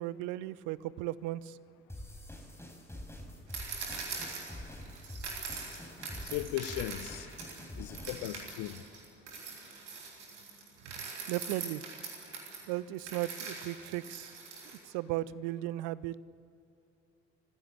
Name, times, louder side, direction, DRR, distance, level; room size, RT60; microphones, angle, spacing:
voice 1, 0.0-1.6 10.8-10.9 11.3-11.8 12.7-14.3 14.8-16.2, right 15 dB, 60° right, 0.7 m, -36 dB
sound 1, 1.9-8.3, left 1 dB, 5° left, 4.8 m, -46 dB
sound 2, 3.5-7.7 7.9-14.8, right 4 dB, 80° right, 3.4 m, -43 dB
voice 2, 6.2-7.3 7.8-8.8, left 15 dB, 60° left, 0.9 m, -37 dB
23.5 x 15.5 x 8.5 m
figure-of-eight pair, 55°, 34 cm